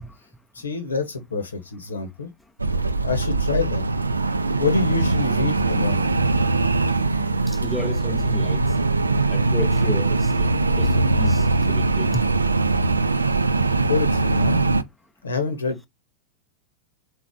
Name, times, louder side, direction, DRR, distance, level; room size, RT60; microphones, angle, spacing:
voice 1, 0.5-2.3 3.0-3.8 4.6-6.1 13.9-14.6 15.2-15.9, left 4 dB, 75° left, 1.1 m, -27 dB
sound 1, 2.6-14.8, right 3 dB, 80° right, 0.4 m, -21 dB
voice 2, 7.5-8.6 9.3-10.5 10.8-10.9 11.2-12.3, equal, 5° left, 0.5 m, -32 dB
3.9 x 3.3 x 3.6 m
figure-of-eight pair, 90°, 0 cm